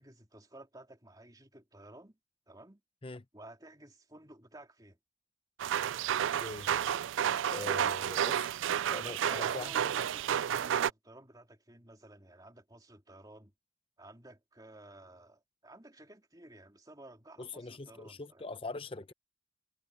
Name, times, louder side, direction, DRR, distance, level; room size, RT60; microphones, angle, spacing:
voice 1, 0.0-2.2 2.5-2.8 3.3-5.0 7.4-8.0 9.0-13.5 14.0-18.4, right 1 dB, 20° right, 3.2 m, -53 dB
sound 1, 5.6-10.9, right 9 dB, 70° right, 0.3 m, -31 dB
voice 2, 6.4-6.7 7.5-8.3 8.9-9.7 17.4-19.1, left 2 dB, 25° left, 0.7 m, -42 dB
head